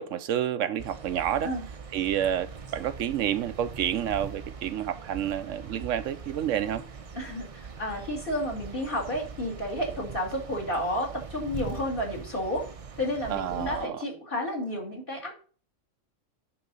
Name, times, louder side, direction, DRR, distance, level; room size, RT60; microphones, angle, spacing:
voice 1, 0.0-1.5 1.9-6.8 13.3-14.0, right 10 dB, 85° right, 1.0 m, -29 dB
sound 1, 0.8-13.9, right 5 dB, 40° right, 0.6 m, -42 dB
voice 2, 7.1-7.5 7.8-12.7 13.0-15.4, left 1 dB, 45° left, 2.5 m, -31 dB
10.5 x 3.9 x 5.4 m
omnidirectional pair, 1.3 m